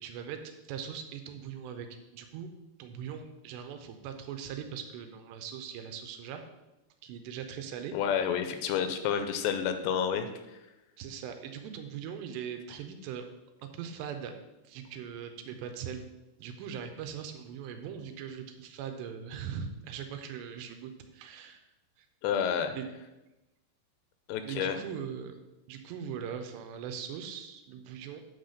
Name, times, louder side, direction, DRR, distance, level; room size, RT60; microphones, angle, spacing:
voice 1, 0.0-1.9 2.1-2.5 2.8-6.4 7.0-8.0 11.0-13.3 13.6-14.3 14.6-16.0 16.4-21.6 22.0-22.1 22.7-22.9 24.4-25.4 25.7-28.2, right 8 dB, 80° right, 6 dB, 2.8 m, -40 dB
voice 2, 7.9-10.3 22.2-22.7 24.3-24.8, left 8 dB, 85° left, 8 dB, 2.7 m, -29 dB
8.8 x 4.0 x 6.4 m, 1.0 s
omnidirectional pair, 5.1 m